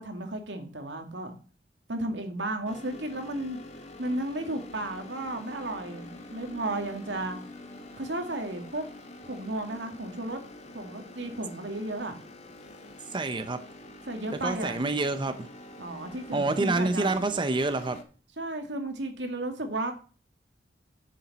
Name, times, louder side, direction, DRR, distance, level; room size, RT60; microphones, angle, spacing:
voice 1, 0.0-1.4 1.9-3.6 4.0-7.4 8.0-8.9 9.2-10.4 10.7-12.2 14.1-14.8 15.8-17.2 18.4-19.9, right 1 dB, 90° right, 5 dB, 2.1 m, -34 dB
sound 1, 2.6-18.0, left 1 dB, 40° left, 1.7 m, -46 dB
voice 2, 13.1-13.6 14.4-15.5 16.3-18.0, right 3 dB, 25° right, 9 dB, 0.6 m, -27 dB
10.0 x 7.1 x 4.1 m, 0.37 s
head